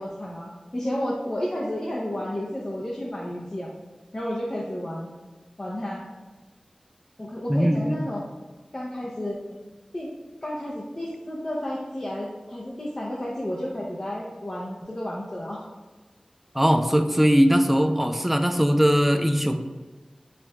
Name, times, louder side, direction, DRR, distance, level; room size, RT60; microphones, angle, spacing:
voice 1, 0.0-3.7 4.1-5.1 5.6-6.0 7.2-8.3 8.7-9.6 9.9-10.1 10.4-15.7, left 1 dB, 35° left, -4 dB, 0.6 m, -31 dB
voice 2, 7.5-8.1 16.5-19.6, equal, 5° right, 7 dB, 0.3 m, -20 dB
4.4 x 3.8 x 2.3 m, 1.3 s
wide cardioid pair, 65°, 2 cm